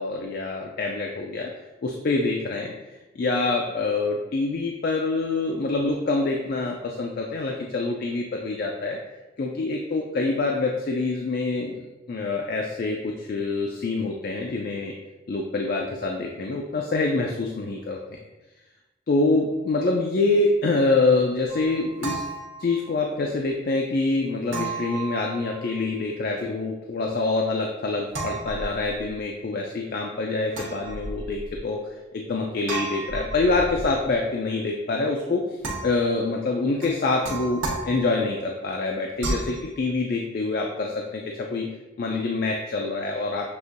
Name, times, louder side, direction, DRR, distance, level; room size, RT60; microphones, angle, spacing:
voice 1, 0.0-1.5 1.8-2.7 3.1-9.0 9.4-11.8 12.1-14.9 15.3-18.0 19.1-22.2 22.6-31.8 32.1-35.6 35.8-41.2 41.5-41.7 42.0-43.5, left 3 dB, 50° left, 1 dB, 0.3 m, -25 dB
sound 1, 21.5-23.1 24.5-25.9 28.1-29.2 30.5-31.6 32.7-34.1 35.6-36.3 36.8-38.4 39.2-39.6, right 2 dB, 80° right, 1.0 m, -33 dB
6.7 x 2.6 x 2.5 m, 1.1 s
head